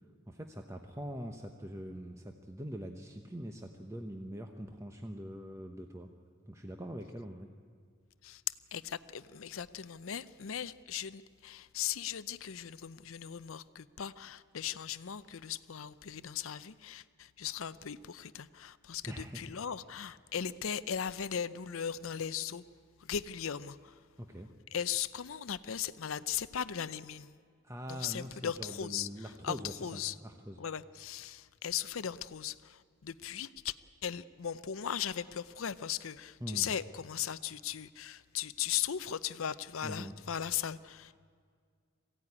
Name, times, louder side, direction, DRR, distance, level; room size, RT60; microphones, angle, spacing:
voice 1, 0.3-6.1 6.5-7.5 19.0-19.4 24.2-24.5 27.6-30.6 36.4-36.7 39.8-40.1, equal, 15° right, 4 dB, 0.9 m, -43 dB
voice 2, 8.7-22.6 23.0-23.9 24.7-27.3 27.9-29.1 29.4-30.1 30.6-33.7 34.0-41.2, left 9 dB, 70° left, 15 dB, 0.6 m, -38 dB
22.0 x 16.0 x 9.8 m, 2.1 s
head